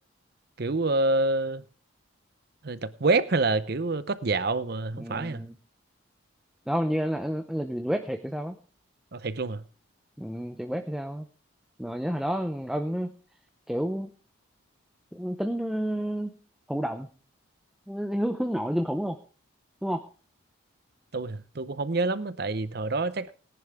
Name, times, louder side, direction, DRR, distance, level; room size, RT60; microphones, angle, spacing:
voice 1, 0.6-1.6 2.6-5.4 9.1-9.6 21.1-23.3, right 3 dB, 50° right, 0.7 m, -27 dB
voice 2, 5.0-5.5 6.7-8.6 10.2-11.3 11.8-13.2 13.7-14.1 15.1-16.3 16.7-17.1 17.9-19.2 19.8-20.0, equal, ahead, 0.6 m, -30 dB
18.5 x 10.5 x 3.5 m
head